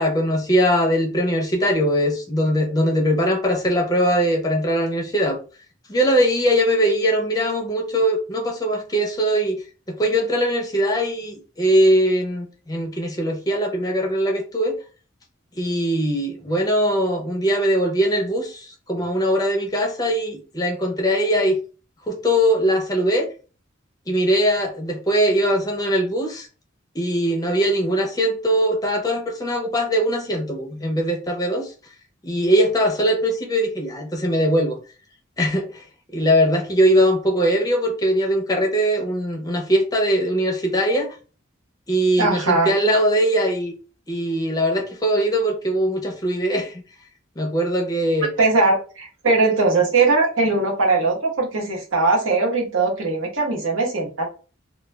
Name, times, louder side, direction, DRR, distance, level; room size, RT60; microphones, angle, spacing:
voice 1, 0.0-5.4 5.9-9.6 9.9-14.8 15.6-21.6 22.1-23.3 24.1-26.5 26.9-31.7 32.2-34.8 35.4-35.8 36.1-41.2 41.9-43.7 44.1-46.7 47.4-48.3, equal, 20° left, 0.5 m, -21 dB
voice 2, 42.2-42.7 48.4-54.3, right 3 dB, 85° right, 1.0 m, -20 dB
2.2 x 2.2 x 3.2 m
head